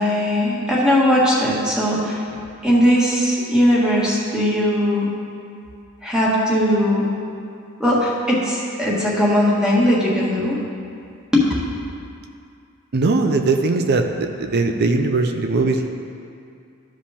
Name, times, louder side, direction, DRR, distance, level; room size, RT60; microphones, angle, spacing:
voice 1, 0.0-2.2 2.6-5.1 6.0-7.1 7.8-10.6 11.3-11.4, equal, 5° right, -6 dB, 1.5 m, -19 dB
voice 2, 12.9-15.9, right 3 dB, 50° right, 6 dB, 0.5 m, -20 dB
14.0 x 5.0 x 3.5 m, 2.4 s
head